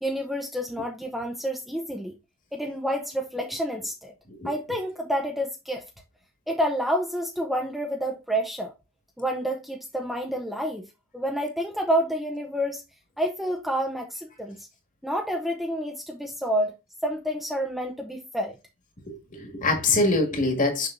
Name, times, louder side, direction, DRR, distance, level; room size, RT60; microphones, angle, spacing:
voice 1, 0.0-2.1 2.5-4.1 4.4-5.8 6.5-8.7 9.2-10.9 11.1-12.8 13.2-14.7 15.0-16.7 17.0-18.6, equal, ahead, 0.7 m, -29 dB
voice 2, 19.1-20.9, left 2 dB, 35° left, 1.9 m, -24 dB
6.7 x 6.0 x 2.6 m
head